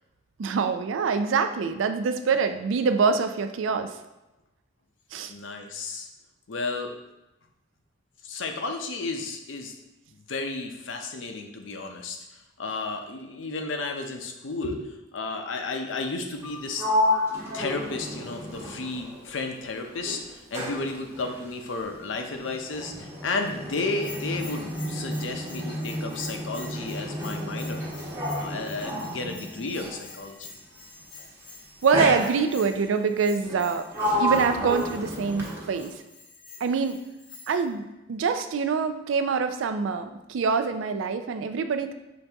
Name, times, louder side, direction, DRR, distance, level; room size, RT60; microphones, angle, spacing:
voice 1, 0.4-3.9 5.1-5.3 31.8-33.9 34.2-35.9 36.6-37.0 37.5-37.8 38.1-41.9, right 5 dB, 80° right, 8 dB, 0.4 m, -25 dB
voice 2, 5.3-6.1 6.5-7.0 8.2-9.7 10.3-16.9 17.5-27.8 28.3-30.5, left 3 dB, 75° left, 4 dB, 0.6 m, -33 dB
Sliding door, 16.3-19.6 19.9-30.1 31.0-31.3 31.9-32.8 33.4-36.0, equal, 15° right, 1.0 m, -31 dB
Bell, 23.9-37.7, left 4 dB, 25° left, 0.6 m, -48 dB
5.8 x 2.7 x 3.4 m, 0.97 s
head